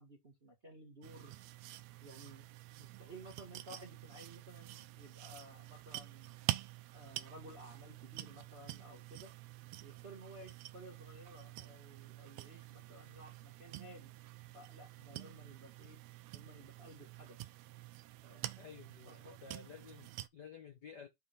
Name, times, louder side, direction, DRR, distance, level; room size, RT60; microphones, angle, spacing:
voice 1, 0.0-1.3 2.0-2.5 2.8-6.4 6.9-9.3 9.8-14.1 14.5-16.0 16.3-17.4 18.2-18.6 19.1-19.4, right 1 dB, 35° right, 0.9 m, -55 dB
sound 1, 1.0-20.3, right 16 dB, 80° right, 1.6 m, -47 dB
voice 2, 18.6-21.1, left 7 dB, 75° left, 0.9 m, -53 dB
6.6 x 3.3 x 5.6 m
omnidirectional pair, 3.4 m